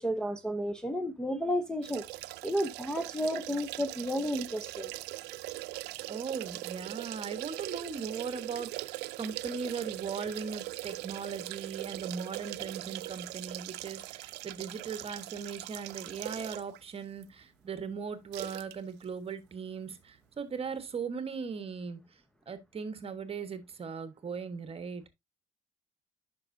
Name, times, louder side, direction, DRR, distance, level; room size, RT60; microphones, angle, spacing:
voice 1, 0.0-2.1 2.4-4.9, equal, 5° left, 0.7 m, -32 dB
sound 1, 1.8-16.8 17.2-17.3 18.3-18.7 19.0-19.1, right 19 dB, 90° right, 0.4 m, -41 dB
voice 2, 6.1-22.0 22.5-25.0, right 5 dB, 35° right, 1.3 m, -38 dB
9.7 x 5.6 x 2.6 m
cardioid pair, 110°, 17 cm